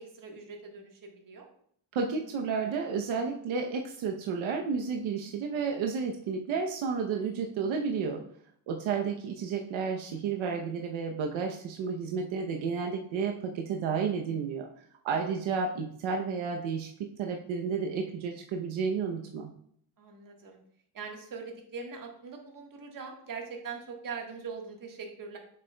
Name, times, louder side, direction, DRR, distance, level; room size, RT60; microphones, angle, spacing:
voice 1, 0.0-1.5 15.1-15.3 20.0-20.6 20.9-25.4, right 5 dB, 45° right, 2 dB, 1.5 m, -42 dB
voice 2, 1.9-8.2 8.7-14.7 15.0-19.5, right 5 dB, 75° right, 2 dB, 0.8 m, -31 dB
7.6 x 6.5 x 2.2 m, 0.66 s
cardioid pair, 125°, 47 cm